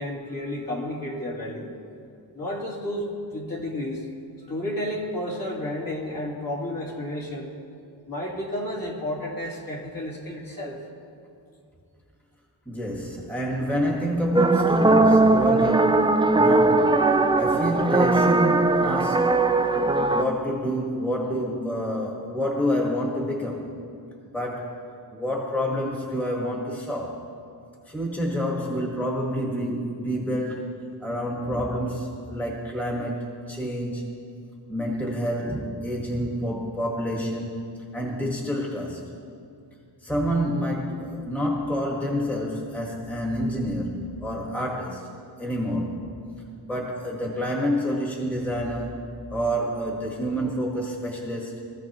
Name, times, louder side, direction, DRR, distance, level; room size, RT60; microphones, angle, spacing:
voice 1, 0.0-1.7 2.3-3.1 3.3-4.1 4.5-7.5 8.1-10.8, left 1 dB, 50° left, -4 dB, 3.0 m, -31 dB
voice 2, 12.6-19.4 19.8-23.7 24.3-24.8 25.1-27.2 27.9-30.7 31.0-34.1 34.7-37.6 37.9-39.0 40.0-45.1 45.4-46.2 46.7-49.0 49.3-51.7, equal, 5° left, -2 dB, 1.5 m, -28 dB
sound 1, 14.3-20.2, right 3 dB, 15° right, 0.3 m, -19 dB
23.0 x 15.0 x 3.0 m, 2.4 s
wide cardioid pair, 165°, 44 cm